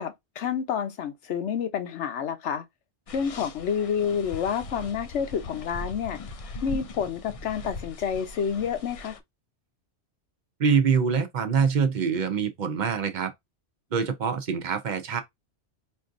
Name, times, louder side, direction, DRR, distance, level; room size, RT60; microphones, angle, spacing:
voice 1, 0.0-2.6 3.1-6.2 6.6-9.2, left 7 dB, 80° left, 1.0 m, -29 dB
sound 1, 3.1-9.2, left 2 dB, 60° left, 0.3 m, -40 dB
voice 2, 10.6-13.3 13.9-15.2, right 6 dB, 50° right, 0.6 m, -24 dB
4.4 x 2.5 x 2.5 m
omnidirectional pair, 1.2 m